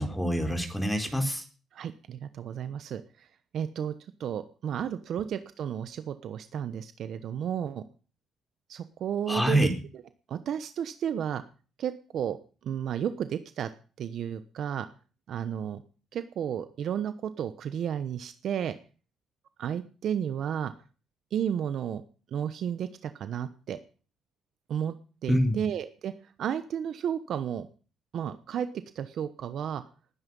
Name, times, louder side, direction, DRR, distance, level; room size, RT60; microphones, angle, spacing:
voice 1, 0.0-1.4 9.3-9.7 25.3-25.6, equal, 5° left, 6 dB, 3.7 m, -26 dB
voice 2, 1.7-3.3 3.5-3.9 4.2-7.8 8.7-9.7 10.3-11.4 11.8-12.4 12.6-13.7 14.0-14.9 15.3-15.8 16.1-18.7 19.6-20.7 21.3-22.0 22.3-23.8 24.7-24.9 25.2-26.1 26.4-27.7 28.1-28.7 28.9-29.8, right 9 dB, 70° right, 11 dB, 1.0 m, -32 dB
19.5 x 9.7 x 5.5 m, 0.38 s
cardioid pair, 90°, 0 cm